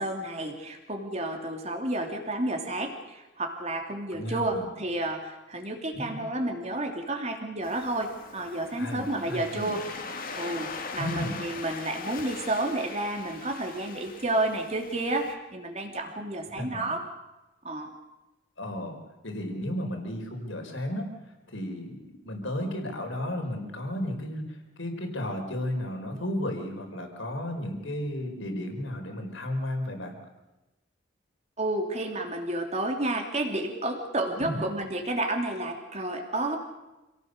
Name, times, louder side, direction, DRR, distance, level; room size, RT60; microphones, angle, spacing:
voice 1, 0.0-9.8 10.4-17.1 17.6-17.9 31.6-36.6, right 1 dB, 35° right, 3 dB, 3.0 m, -31 dB
voice 2, 4.1-4.7 5.9-6.2 8.8-9.8 11.0-11.4 16.6-16.9 18.6-19.0 19.2-21.1 21.5-30.2 34.4-34.6, left 1 dB, 70° left, 4 dB, 4.8 m, -33 dB
Waves surf, 7.6-15.3, left 4 dB, 45° left, 2.3 m, -41 dB
27.5 x 18.0 x 6.7 m, 1.0 s
head